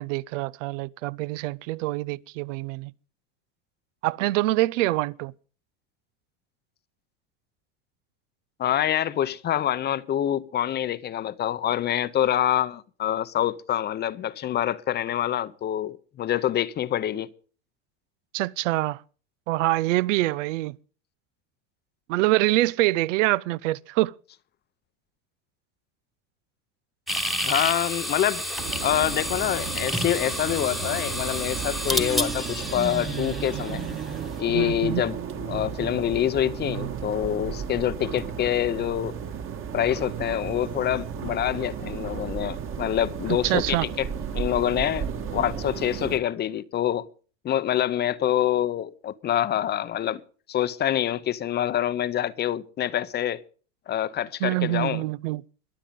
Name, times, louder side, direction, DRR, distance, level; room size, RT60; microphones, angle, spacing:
voice 1, 0.0-2.9 4.0-5.3 18.3-19.0 19.5-20.8 22.1-24.1 34.5-35.0 43.3-43.9 54.4-55.4, right 18 dB, 80° right, 0.5 m, -25 dB
voice 2, 8.6-17.3 27.4-28.4 28.8-33.8 34.4-39.1 39.7-44.1 44.3-45.1 45.3-47.1 47.4-50.2 50.5-53.4 53.9-55.0, left 11 dB, 25° left, 0.6 m, -26 dB
sound 1, 27.1-34.3, equal, ahead, 1.2 m, -30 dB
sound 2, 28.6-46.2, right 7 dB, 35° right, 1.5 m, -34 dB
22.0 x 7.7 x 5.2 m
supercardioid pair, 125°, 37 cm